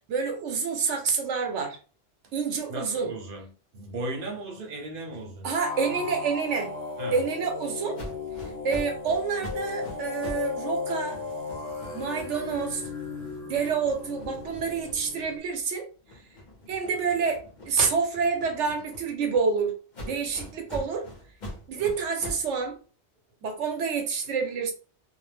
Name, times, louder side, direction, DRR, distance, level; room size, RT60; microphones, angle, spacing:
voice 1, 0.1-1.8 2.3-3.1 5.4-6.7 7.1-8.0 8.6-11.2 11.9-12.8 13.4-15.9 16.7-19.7 20.0-21.1 21.7-22.8 23.4-24.7, right 5 dB, 90° right, 1.0 m, -28 dB
voice 2, 2.7-5.6 7.0-7.2, right 2 dB, 55° right, 0.8 m, -36 dB
sound 1, 5.6-15.4, left 4 dB, 70° left, 1.0 m, -36 dB
sound 2, 7.9-10.5 10.8-15.6 16.0-19.4 19.9-22.5, left 1 dB, 45° left, 0.9 m, -43 dB
2.5 x 2.1 x 3.2 m
omnidirectional pair, 1.2 m